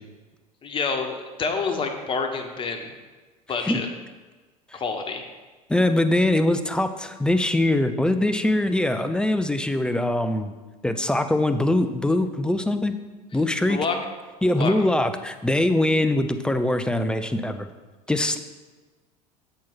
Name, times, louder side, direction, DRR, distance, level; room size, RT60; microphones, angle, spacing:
voice 1, 0.6-2.9 3.5-3.9 4.7-5.2 13.7-14.0 14.5-14.7, left 4 dB, 25° left, 5 dB, 1.0 m, -28 dB
voice 2, 5.7-10.5 10.8-13.0 13.3-13.8 14.4-17.7 18.1-18.4, left 1 dB, 5° left, 9 dB, 0.4 m, -22 dB
7.4 x 4.5 x 5.6 m, 1.3 s
figure-of-eight pair, 70°, 20 cm